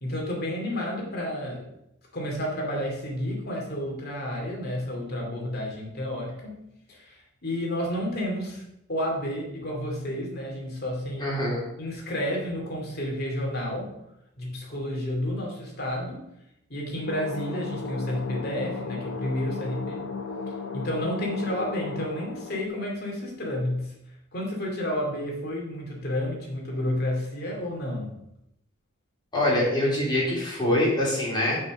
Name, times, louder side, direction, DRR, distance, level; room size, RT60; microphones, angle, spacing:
voice 1, 0.0-1.7 2.1-6.6 6.9-8.6 8.9-11.3 11.8-13.9 14.4-16.2 16.7-20.1 20.7-23.9 24.3-28.1, left 1 dB, 50° left, -1 dB, 2.5 m, -31 dB
voice 2, 11.2-11.6 29.3-31.6, left 1 dB, 20° left, -5 dB, 3.4 m, -24 dB
sound 1, 17.1-22.7, left 4 dB, 80° left, 0.8 m, -35 dB
6.3 x 5.7 x 6.4 m, 0.81 s
head